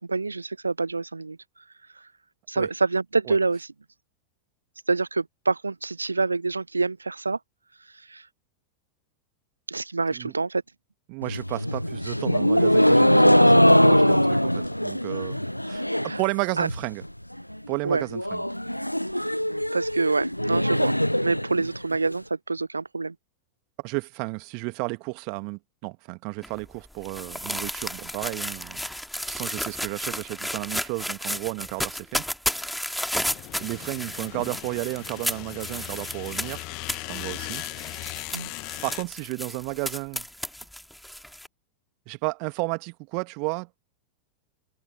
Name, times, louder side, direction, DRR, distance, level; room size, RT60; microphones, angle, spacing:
voice 1, 0.0-1.4 1.9-2.1 2.5-3.7 4.9-7.4 7.8-8.3 9.7-10.6 16.0-16.2 16.6-16.7 17.8-18.0 19.7-20.9 21.2-23.1 38.3-38.5, right 3 dB, 80° right, 0.7 m, -26 dB
voice 2, 11.1-17.0 17.7-18.4 23.8-28.8 29.3-32.3 33.6-36.6 37.0-37.6 38.8-40.2 42.1-43.7, right 36 dB, 45° right, 1.7 m, -33 dB
sound 1, 11.2-16.3 16.5-17.1 17.4-17.5 17.7-17.8 18.1-22.1, equal, 90° left, 0.5 m, -21 dB
sound 2, 26.4-41.5, equal, ahead, 2.3 m, -33 dB
sound 3, 33.2-39.0, left 28 dB, 45° left, 1.1 m, -38 dB
figure-of-eight pair, 90°, 0 cm